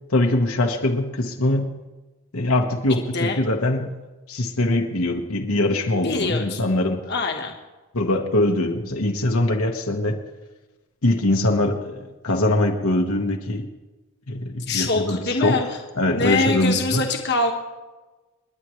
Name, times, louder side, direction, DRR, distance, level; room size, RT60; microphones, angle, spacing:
voice 1, 0.1-1.7 2.3-3.9 4.3-7.0 7.9-10.2 11.0-13.7 14.3-15.6 16.0-17.0, left 1 dB, 75° left, 2 dB, 1.4 m, -22 dB
voice 2, 6.0-6.6 7.1-7.5 14.7-15.8 16.1-17.5, left 3 dB, 50° left, 3 dB, 1.4 m, -24 dB
30.0 x 10.0 x 3.2 m, 1.2 s
head